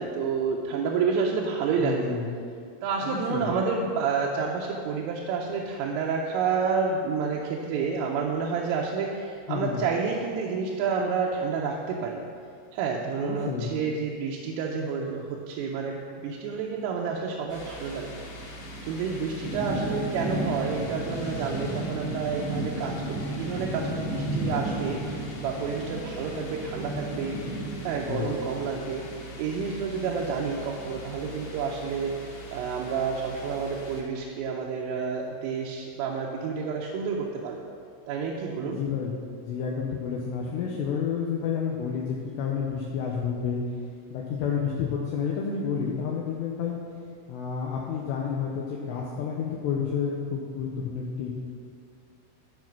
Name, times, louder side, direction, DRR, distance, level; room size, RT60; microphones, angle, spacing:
voice 1, 0.0-2.0 2.8-12.2 12.7-18.1 18.9-27.4 27.8-29.1 29.4-32.2 32.5-37.6 38.1-38.8, right 5 dB, 85° right, -2 dB, 3.3 m, -29 dB
voice 2, 1.8-2.3 3.0-3.5 9.5-9.8 13.2-13.7 28.1-28.3 38.6-39.1 39.4-43.6 44.1-46.8 47.3-51.3, left 7 dB, 80° left, -2 dB, 2.6 m, -30 dB
sound 1, 17.5-34.0, right 1 dB, 65° left, 3.5 m, -35 dB
13.5 x 4.8 x 6.0 m, 2.3 s
omnidirectional pair, 5.8 m